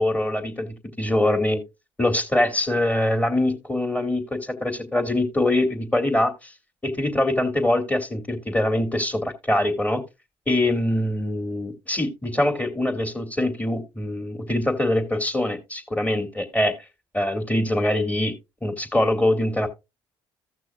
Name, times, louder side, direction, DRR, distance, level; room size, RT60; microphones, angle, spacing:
voice 1, 0.0-1.6 2.0-6.5 6.8-10.0 10.5-16.7 17.1-18.3 18.6-19.7, left 1 dB, 15° left, 2.7 m, -23 dB
15.5 x 6.1 x 2.3 m
supercardioid pair, 65°, 11 cm